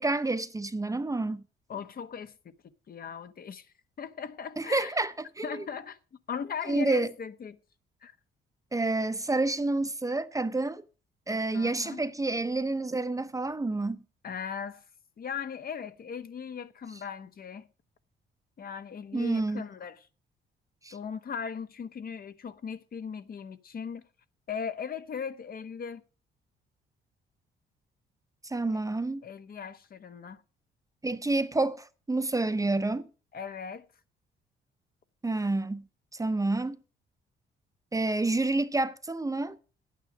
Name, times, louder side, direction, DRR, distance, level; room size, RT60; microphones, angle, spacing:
voice 1, 0.0-1.4 4.6-5.7 6.7-7.1 8.7-10.8 11.3-14.0 19.1-19.6 20.8-21.0 28.4-29.2 31.0-33.1 35.2-35.9 36.1-36.8 37.9-39.6, right 2 dB, 15° right, 0.8 m, -29 dB
voice 2, 1.7-2.3 2.9-3.7 4.0-4.9 5.4-6.0 6.3-7.6 8.0-8.2 11.5-12.0 14.2-14.8 15.2-17.7 18.6-20.1 20.9-24.1 24.5-26.0 29.2-30.4 33.3-33.9, left 7 dB, 50° left, 1.1 m, -38 dB
11.0 x 9.1 x 5.1 m
cardioid pair, 90°, 20 cm